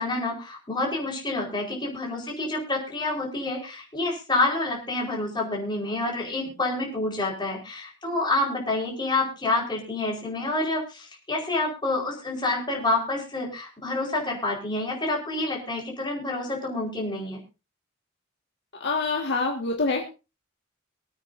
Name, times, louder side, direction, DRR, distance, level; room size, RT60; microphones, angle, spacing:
voice 1, 0.0-17.4, left 2 dB, 20° left, -1 dB, 4.8 m, -28 dB
voice 2, 18.8-20.1, left 3 dB, 55° left, 1 dB, 1.9 m, -26 dB
24.5 x 8.9 x 2.7 m, 0.30 s
head